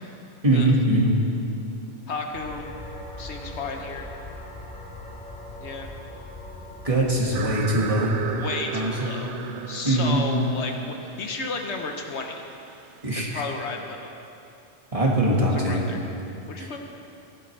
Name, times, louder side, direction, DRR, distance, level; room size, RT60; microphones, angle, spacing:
voice 1, 0.4-1.2 6.8-8.1 8.7-8.9 9.9-10.2 13.0-13.4 14.9-15.8 16.6-16.7, right 1 dB, 30° right, -3 dB, 1.8 m, -22 dB
voice 2, 2.1-2.7 3.2-4.1 5.6-5.9 8.3-9.3 9.7-12.4 13.2-14.1 15.6-16.0 16.5-16.8, left 3 dB, 70° left, 3 dB, 1.2 m, -33 dB
sound 1, 2.3-8.9, left 1 dB, 40° left, 1.2 m, -41 dB
sound 2, 7.3-13.2, right 8 dB, 80° right, 0.9 m, -36 dB
16.5 x 11.5 x 3.3 m, 2.7 s
omnidirectional pair, 1.2 m